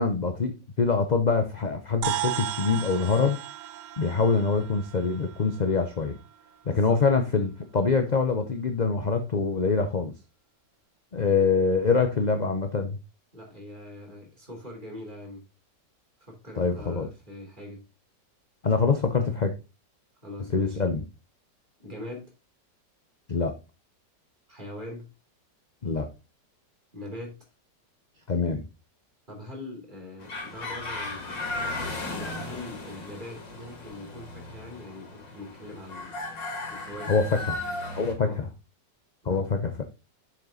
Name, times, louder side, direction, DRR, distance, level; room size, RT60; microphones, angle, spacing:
voice 1, 0.0-3.4 4.0-6.2 6.7-10.1 11.1-13.0 16.6-17.1 18.6-19.5 20.5-21.0 23.3-23.5 25.8-26.1 28.3-28.6 37.1-37.5 37.9-38.5 39.2-39.8, left 4 dB, 40° left, 6 dB, 0.6 m, -25 dB
sound 1, 2.0-6.6, right 13 dB, 75° right, 1.2 m, -35 dB
voice 2, 6.7-7.0 13.3-15.4 16.2-17.8 20.2-20.8 21.8-22.3 24.5-25.1 26.9-27.3 29.3-31.6 32.1-36.2 36.7-37.4 38.2-38.4 39.3-39.5, left 1 dB, 25° right, 0 dB, 3.4 m, -42 dB
sound 2, 30.2-38.1, left 2 dB, 90° left, 3.2 m, -36 dB
7.4 x 6.4 x 3.8 m, 0.27 s
omnidirectional pair, 1.9 m